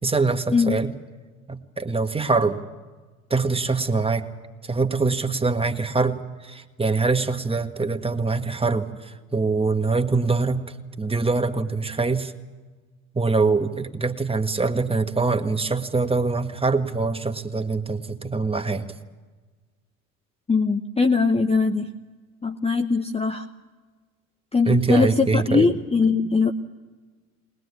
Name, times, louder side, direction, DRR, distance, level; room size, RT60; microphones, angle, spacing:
voice 1, 0.0-0.9 1.5-2.6 3.3-4.3 4.6-10.6 11.0-12.3 13.1-18.9 24.7-25.7, right 3 dB, 10° right, 7 dB, 1.7 m, -24 dB
voice 2, 20.5-21.9 22.4-23.4 24.5-26.5, left 4 dB, 15° left, 7 dB, 1.0 m, -21 dB
21.0 x 21.0 x 8.4 m, 1.3 s
figure-of-eight pair, 70°, 44 cm